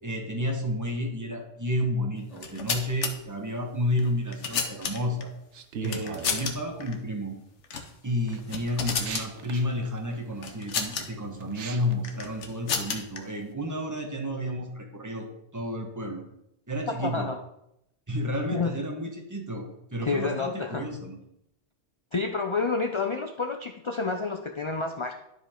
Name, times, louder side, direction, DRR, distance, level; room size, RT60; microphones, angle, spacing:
voice 1, 0.0-5.3 5.8-7.4 8.0-15.3 15.5-16.2 16.7-17.3 18.1-21.2, left 1 dB, 15° right, 2 dB, 1.4 m, -31 dB
sound 1, 2.3-3.1 4.0-5.2 5.8-6.5 6.8-6.9 7.6-7.9 8.3-9.3 10.4-11.0 12.0-13.2, left 5 dB, 85° left, 1.3 m, -31 dB
sound 2, 5.5-6.6 7.4-7.8 8.3-11.9, right 6 dB, 80° right, 1.0 m, -39 dB
voice 2, 17.0-17.4 18.5-18.8 20.0-20.8 22.1-25.1, left 4 dB, 45° left, 5 dB, 0.4 m, -29 dB
11.5 x 5.1 x 3.7 m, 0.82 s
omnidirectional pair, 1.2 m